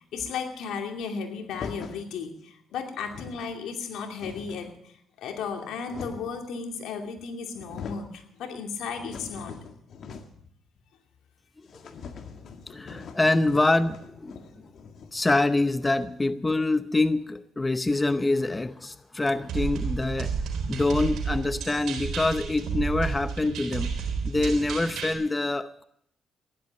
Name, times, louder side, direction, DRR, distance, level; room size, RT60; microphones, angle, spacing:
voice 1, 0.0-9.5 14.4-14.5, left 5 dB, 80° left, 2.6 m, -35 dB
sound 1, 1.5-2.1 2.7-2.8 3.0-3.5 3.9-4.8 5.5-6.4 7.2-7.3 7.5-8.1 8.5-10.5 10.8-10.9 11.2-11.3 11.7-16.2, left 5 dB, 60° left, 1.9 m, -43 dB
voice 2, 12.7-14.4 15.1-20.3 20.7-23.9 24.2-25.8, left 2 dB, 20° left, 0.7 m, -25 dB
sound 2, 19.5-25.1, right 5 dB, 80° right, 3.7 m, -31 dB
15.0 x 11.5 x 7.6 m
cardioid pair, 90°, 0 cm